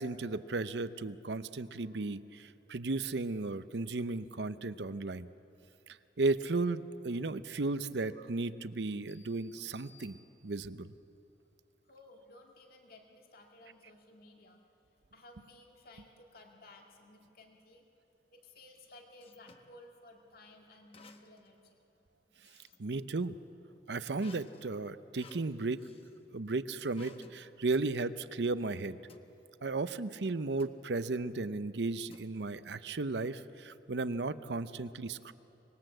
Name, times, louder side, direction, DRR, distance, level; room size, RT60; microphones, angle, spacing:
voice 1, 0.0-5.3 6.2-10.2 10.4-10.9 22.8-23.3 23.9-25.8 26.3-29.0 29.6-35.3, right 3 dB, 70° right, 14 dB, 0.7 m, -35 dB
sound 1, 9.1-10.9, left 3 dB, 10° left, 2.2 m, -63 dB
voice 2, 11.8-14.6 15.1-17.8 18.3-21.8 22.5-22.6, left 2 dB, 55° left, 2 dB, 2.1 m, -56 dB
sound 2, 18.6-19.7 20.9-21.5 21.9-23.1 24.2-26.2 26.9-27.4 27.7-27.9 29.1-29.3 30.6-30.9 32.1-32.7, left 4 dB, 30° left, 1.3 m, -58 dB
25.5 x 20.5 x 7.8 m, 2.9 s
head